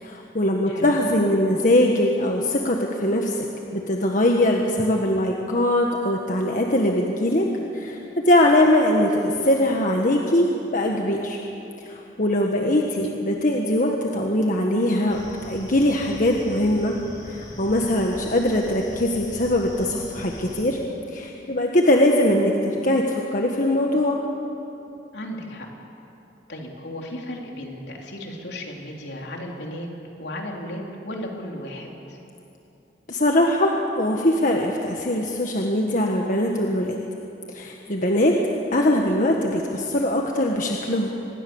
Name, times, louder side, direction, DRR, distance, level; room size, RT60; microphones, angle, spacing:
voice 1, 0.0-3.3 3.7-11.4 11.8-17.0 17.3-20.8 21.1-24.2 33.1-37.0 37.5-38.4 38.7-41.1, left 1 dB, 50° left, 1 dB, 1.6 m, -21 dB
sound 1, 15.1-20.6, equal, 25° left, 6.4 m, -41 dB
voice 2, 25.1-25.7 26.5-29.9 30.2-32.2, left 1 dB, 75° left, 0 dB, 3.7 m, -35 dB
25.5 x 21.0 x 7.2 m, 2.9 s
head